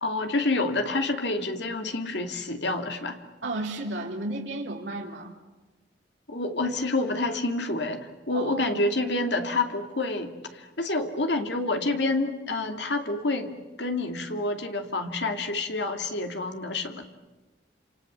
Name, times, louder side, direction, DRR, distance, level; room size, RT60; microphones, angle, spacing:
voice 1, 0.0-3.2 6.3-13.5 13.8-17.0, left 2 dB, 70° left, 5 dB, 2.6 m, -28 dB
voice 2, 3.4-5.4 8.3-8.6, right 2 dB, 75° right, -2 dB, 3.5 m, -33 dB
28.5 x 27.5 x 7.5 m, 1.2 s
head